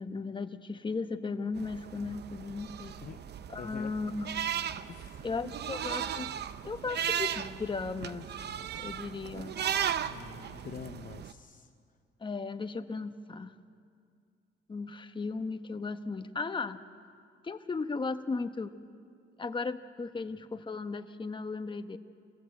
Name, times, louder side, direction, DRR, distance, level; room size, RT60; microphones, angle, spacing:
voice 1, 0.0-3.0 3.5-4.4 5.2-6.3 6.6-8.4 8.7-9.5 12.2-13.5 14.7-16.8 17.4-18.7 19.4-22.0, left 4 dB, 25° left, 8 dB, 1.1 m, -36 dB
sound 1, 1.6-11.3, right 9 dB, 55° right, 0.8 m, -36 dB
voice 2, 3.6-3.9 4.9-5.3 10.0-11.7, left 7 dB, 40° left, 7 dB, 0.8 m, -46 dB
26.0 x 17.5 x 7.8 m, 2.3 s
cardioid pair, 90°, 20 cm